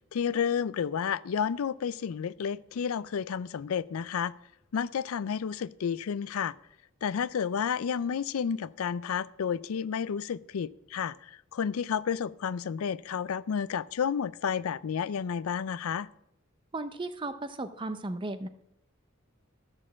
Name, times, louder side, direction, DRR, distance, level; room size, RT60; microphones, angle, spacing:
voice 1, 0.1-4.3 4.7-6.5 7.0-16.1, left 7 dB, 85° left, 19 dB, 0.4 m, -31 dB
voice 2, 16.7-18.5, right 2 dB, 25° right, 10 dB, 0.5 m, -35 dB
12.5 x 6.5 x 7.2 m, 0.79 s
head